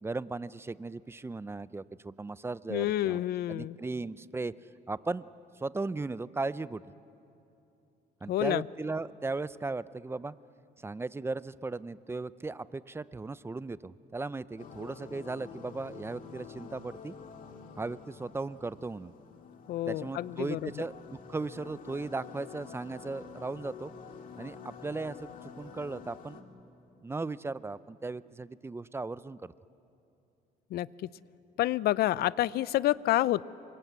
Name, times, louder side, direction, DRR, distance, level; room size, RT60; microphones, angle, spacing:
voice 1, 0.0-4.5 4.9-5.3 5.6-6.8 8.2-10.3 10.8-17.1 17.8-19.1 19.9-23.9 24.4-25.3 25.6-26.4 27.0-29.5, right 3 dB, 15° right, 17 dB, 0.6 m, -37 dB
voice 2, 2.7-3.8 8.3-8.6 19.7-20.7 30.7-30.9 31.6-33.4, left 14 dB, 70° left, 19 dB, 0.6 m, -28 dB
sound 1, 14.6-26.4, left 6 dB, 55° left, 2.3 m, -48 dB
27.5 x 25.5 x 8.2 m, 2.8 s
cardioid pair, 110°, 17 cm